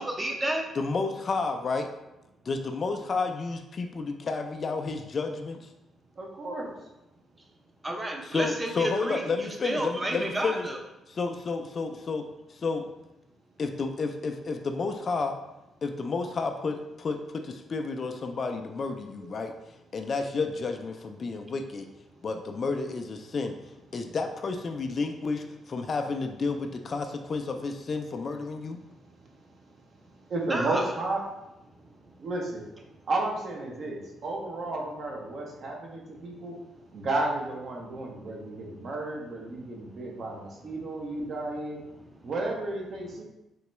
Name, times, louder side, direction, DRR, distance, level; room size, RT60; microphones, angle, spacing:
voice 1, 0.0-0.6 7.8-10.8 30.4-30.8 37.9-38.0 39.6-40.0, right 1 dB, 20° right, 2 dB, 0.6 m, -31 dB
voice 2, 0.8-1.9 2.5-5.6 8.2-10.7 11.1-12.2 12.5-12.9 13.6-15.4 15.8-19.5 19.9-21.9 22.2-23.6 23.9-28.8, left 4 dB, 45° left, 5 dB, 0.3 m, -31 dB
voice 3, 6.2-6.7 21.3-21.4 30.3-31.2 32.2-32.6 33.1-36.6 36.9-41.8 42.2-43.2, right 2 dB, 55° right, 0 dB, 0.7 m, -32 dB
3.8 x 2.2 x 3.0 m, 0.93 s
cardioid pair, 90°, 0 cm